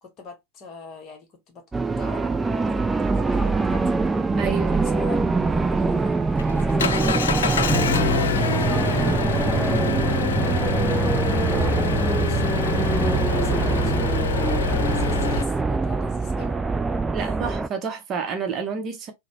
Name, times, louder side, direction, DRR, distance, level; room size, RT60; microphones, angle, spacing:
voice 1, 0.0-1.6 2.0-2.3 2.7-4.0 4.7-7.5 8.2-12.6 13.1-16.6 17.2-17.4, left 4 dB, 35° left, 1.1 m, -43 dB
sound 1, 1.7-17.7, right 3 dB, 10° right, 0.3 m, -23 dB
voice 2, 4.4-4.8 17.1-19.1, right 6 dB, 30° right, 0.7 m, -29 dB
Engine, 5.9-15.4, left 7 dB, 65° left, 0.4 m, -26 dB
3.9 x 2.1 x 2.9 m
figure-of-eight pair, 90°, 0 cm